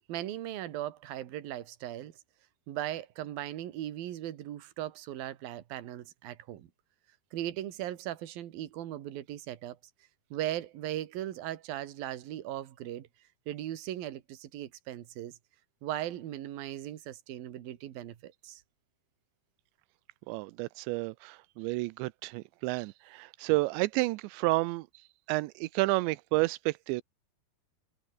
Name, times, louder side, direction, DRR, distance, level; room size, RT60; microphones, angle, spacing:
voice 1, 0.0-2.1 2.7-6.7 7.3-9.8 10.3-13.1 13.5-15.3 15.8-18.6, right 13 dB, 60° right, 3.2 m, -38 dB
voice 2, 20.3-24.9 25.3-27.0, right 22 dB, 90° right, 2.9 m, -30 dB
omnidirectional pair, 5.1 m